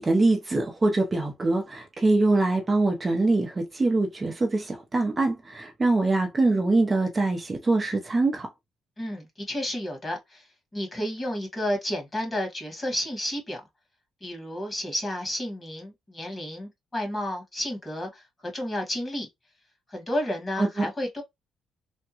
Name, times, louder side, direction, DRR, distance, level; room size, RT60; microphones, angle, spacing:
voice 1, 0.0-8.5 20.6-20.9, right 2 dB, 25° right, 0.7 m, -24 dB
voice 2, 9.0-10.4 10.7-13.6 14.2-19.3 19.9-21.2, left 1 dB, 25° left, 1.9 m, -31 dB
3.5 x 2.2 x 2.9 m
cardioid pair, 90°, 0 cm